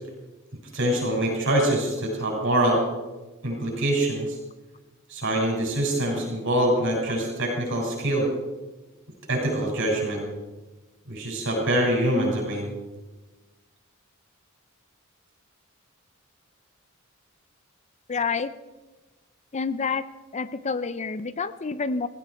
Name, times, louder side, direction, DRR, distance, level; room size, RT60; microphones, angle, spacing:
voice 1, 0.7-2.8 3.4-4.4 5.1-8.3 9.3-10.2 11.1-12.7, right 1 dB, 60° right, -1 dB, 6.9 m, -24 dB
voice 2, 18.1-18.5 19.5-20.0 20.3-22.1, left 5 dB, 35° left, 15 dB, 0.5 m, -28 dB
16.5 x 16.5 x 4.9 m, 1.1 s
head